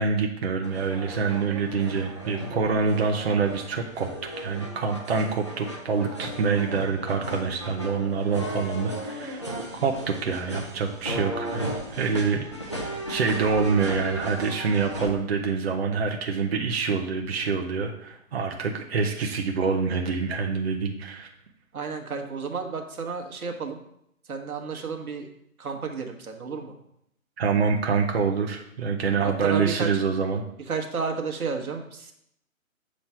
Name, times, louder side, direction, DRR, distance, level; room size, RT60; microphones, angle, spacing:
voice 1, 0.0-4.1 4.4-9.4 9.8-12.5 12.8-21.3 27.4-30.4, right 5 dB, 45° right, 2 dB, 0.7 m, -26 dB
sound 1, 0.6-15.1, equal, 20° left, 0.4 m, -36 dB
voice 2, 21.7-23.8 24.3-25.3 25.6-26.7 29.2-29.9 30.7-32.1, right 5 dB, 90° right, 3 dB, 1.3 m, -32 dB
7.3 x 3.1 x 5.6 m, 0.76 s
hypercardioid pair, 160°, 42 cm